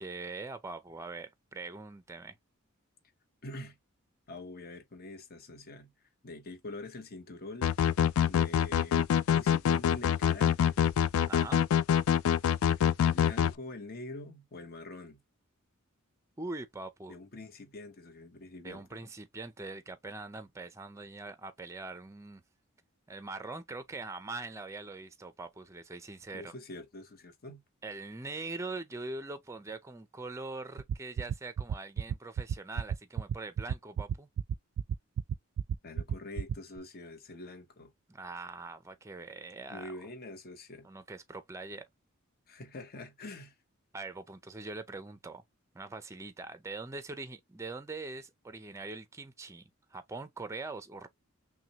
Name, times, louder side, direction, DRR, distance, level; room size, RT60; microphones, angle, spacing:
voice 1, 0.0-2.4 11.3-11.6 16.4-17.1 18.6-22.4 23.1-26.5 27.8-34.3 38.1-39.9 40.8-41.8 43.9-45.4 45.7-51.1, right 3 dB, 15° right, 0.5 m, -42 dB
voice 2, 3.4-3.8 4.3-5.9 6.2-7.7 8.3-10.8 13.0-15.2 17.1-18.8 26.3-27.6 35.8-37.9 39.7-40.9 42.5-43.5, left 2 dB, 50° left, 1.0 m, -45 dB
sound 1, 7.6-13.5, left 9 dB, 80° left, 0.3 m, -25 dB
sound 2, 30.8-36.8, right 8 dB, 85° right, 0.3 m, -31 dB
5.9 x 2.2 x 2.9 m
head